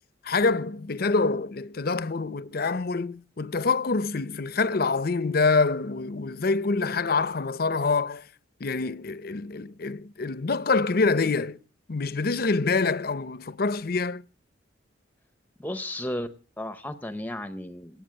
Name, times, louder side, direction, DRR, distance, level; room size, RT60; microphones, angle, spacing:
voice 1, 0.2-8.2 8.6-11.6 11.9-14.2, left 4 dB, 50° left, 0.7 m, -26 dB
voice 2, 15.6-16.3 16.6-18.0, left 1 dB, 10° left, 0.7 m, -34 dB
18.0 x 8.7 x 7.5 m
head